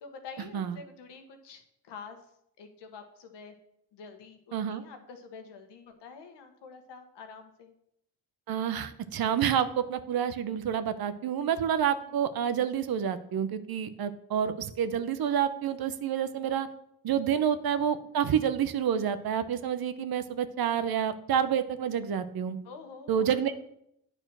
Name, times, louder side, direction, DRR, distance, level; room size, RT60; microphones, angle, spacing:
voice 1, 0.0-2.2 2.6-3.5 3.9-7.7 17.3-17.5 22.6-23.4, left 5 dB, 80° left, 6 dB, 1.3 m, -47 dB
voice 2, 4.5-4.8 8.5-16.7 17.0-22.6 23.1-23.7, right 8 dB, 60° right, 12 dB, 0.8 m, -28 dB
9.0 x 4.4 x 6.1 m, 0.75 s
supercardioid pair, 60°, 41 cm